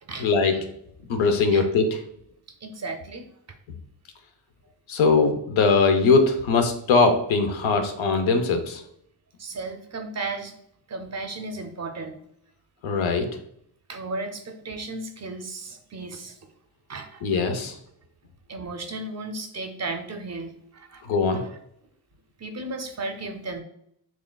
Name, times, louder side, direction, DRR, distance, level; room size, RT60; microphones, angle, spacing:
voice 1, 0.2-0.5 1.1-2.0 4.9-8.8 12.8-13.3 17.2-17.8 21.0-21.4, left 4 dB, 80° left, 6 dB, 0.7 m, -21 dB
voice 2, 2.6-3.3 9.4-10.6 10.9-12.2 13.9-16.4 16.9-17.3 18.5-21.0 21.3-21.5 22.4-23.6, right 3 dB, 35° right, 6 dB, 0.5 m, -34 dB
5.8 x 2.4 x 2.2 m, 0.72 s
cardioid pair, 95°, 47 cm